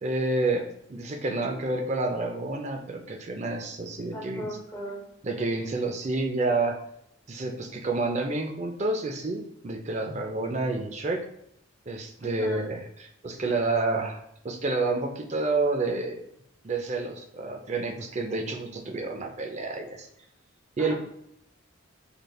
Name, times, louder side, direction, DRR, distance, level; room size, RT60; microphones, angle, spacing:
voice 1, 0.0-4.6 5.2-6.8 7.3-11.2 11.9-14.2 14.4-16.2 16.6-20.1 20.8-20.9, right 2 dB, 35° right, 4 dB, 0.5 m, -29 dB
voice 2, 4.1-5.0 12.2-12.6 20.8-20.9, equal, 15° left, -4 dB, 0.6 m, -38 dB
5.0 x 3.2 x 2.3 m, 0.74 s
head